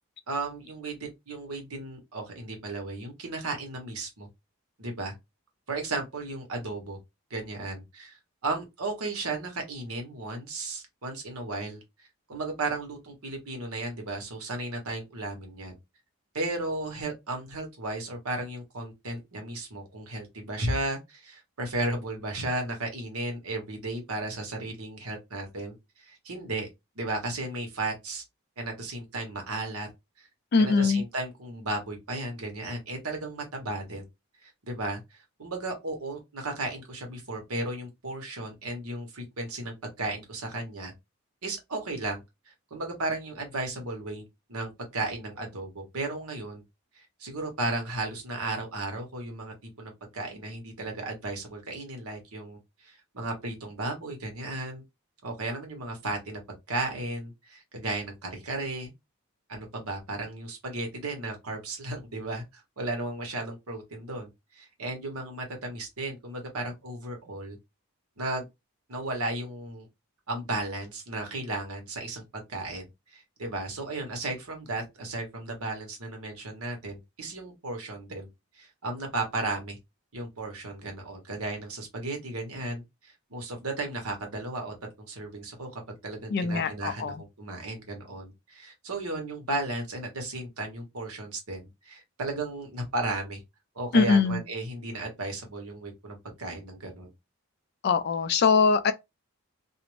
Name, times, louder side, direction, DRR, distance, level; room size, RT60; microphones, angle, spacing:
voice 1, 0.3-4.3 4.8-5.1 5.7-7.0 7.3-15.8 16.3-26.7 26.9-28.2 28.6-29.9 30.2-30.3 30.6-34.1 34.4-40.9 41.4-44.2 44.5-46.6 47.0-54.8 55.2-56.4 56.7-58.9 59.5-67.6 68.2-68.5 68.9-69.9 70.3-72.2 72.5-78.3 78.5-79.8 80.1-93.4 93.7-97.1, right 2 dB, 80° right, 1.0 m, -35 dB
voice 2, 30.5-31.0 86.3-87.2 93.9-94.4 97.8-98.9, left 4 dB, 45° left, 0.3 m, -22 dB
2.5 x 2.0 x 3.0 m
head